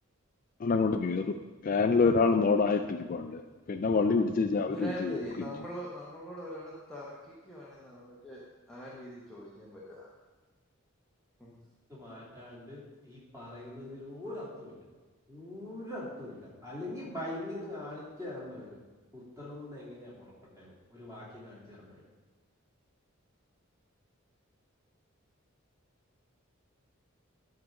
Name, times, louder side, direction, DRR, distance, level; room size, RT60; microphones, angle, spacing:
voice 1, 0.6-1.3 1.6-3.4 3.7-5.2, left 4 dB, 40° left, 7 dB, 0.4 m, -26 dB
voice 2, 4.6-8.4 8.7-10.1 11.4-11.5, equal, 5° left, -7 dB, 1.2 m, -42 dB
voice 3, 11.9-14.8 15.3-18.8 19.1-20.2 20.5-22.0, left 1 dB, 15° right, -7 dB, 3.1 m, -42 dB
11.5 x 3.9 x 6.4 m, 1.3 s
head